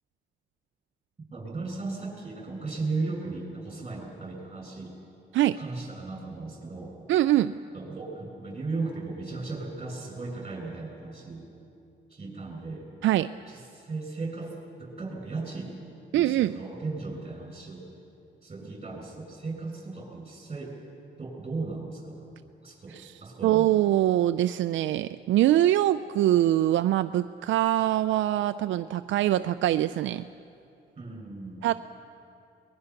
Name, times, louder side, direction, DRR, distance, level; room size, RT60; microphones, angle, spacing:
voice 1, 1.3-4.9 5.6-6.9 7.7-11.4 12.1-12.9 13.5-15.7 16.1-17.8 18.4-20.7 21.2-22.3 22.6-23.7 31.0-31.6, right 3 dB, 30° right, 1 dB, 7.4 m, -36 dB
voice 2, 7.1-7.5 13.0-13.3 16.1-16.6 22.9-23.1 23.4-30.3 31.6-31.7, right 13 dB, 75° right, 11 dB, 0.5 m, -23 dB
22.5 x 21.5 x 5.9 m, 2.6 s
cardioid pair, 90°, 20 cm